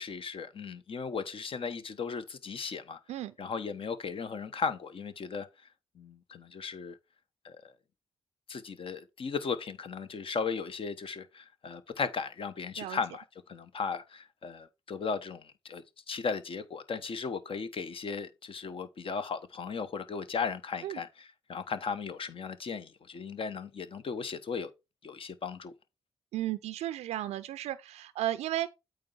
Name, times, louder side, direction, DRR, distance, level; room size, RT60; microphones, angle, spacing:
voice 1, 0.0-3.0 3.4-5.5 6.0-7.0 7.4-7.6 8.5-24.7 25.0-25.7, left 5 dB, 50° left, 1.0 m, -36 dB
voice 2, 26.3-28.7, right 13 dB, 70° right, 0.4 m, -34 dB
8.6 x 3.4 x 5.5 m
hypercardioid pair, 40°, 12 cm